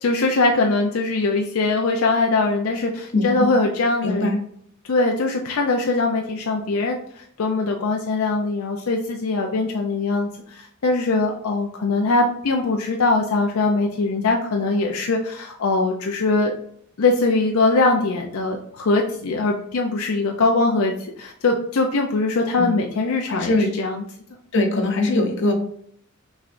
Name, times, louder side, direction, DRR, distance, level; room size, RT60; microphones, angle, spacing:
voice 1, 0.0-4.4 4.8-16.5 17.0-24.0, left 3 dB, 85° left, 2 dB, 0.5 m, -22 dB
voice 2, 4.0-4.3 22.6-22.7 23.3-23.7 24.5-25.5, left 2 dB, 60° left, 3 dB, 0.9 m, -21 dB
6.0 x 3.2 x 2.6 m, 0.66 s
head